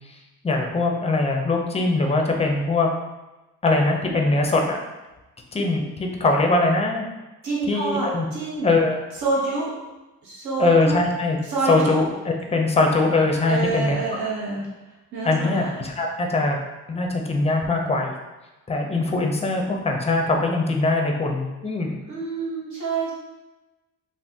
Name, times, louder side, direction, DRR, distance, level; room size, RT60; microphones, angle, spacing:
voice 1, 0.4-2.9 3.6-4.8 5.5-7.1 7.7-8.3 8.6-9.0 10.6-11.4 11.7-14.0 15.2-16.6 16.9-18.1 18.7-22.0, left 3 dB, 20° left, 2 dB, 0.5 m, -22 dB
voice 2, 7.4-8.7 9.2-9.7 10.2-11.0 11.5-12.0 13.5-14.7 15.1-15.7 22.1-23.1, right 3 dB, 70° right, -5 dB, 1.3 m, -27 dB
2.5 x 2.5 x 3.4 m, 1.1 s
cardioid pair, 90°, 30 cm